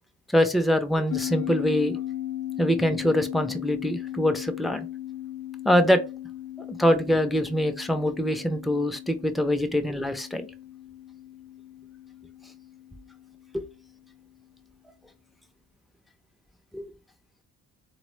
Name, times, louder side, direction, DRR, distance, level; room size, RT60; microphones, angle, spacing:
voice 1, 0.3-2.0 2.6-4.9 5.6-6.0 6.8-10.5 13.5-13.6 16.7-16.8, equal, ahead, 0.3 m, -24 dB
sound 1, 1.1-13.9, left 13 dB, 85° left, 0.6 m, -37 dB
3.8 x 2.0 x 3.0 m
cardioid pair, 90°, 30 cm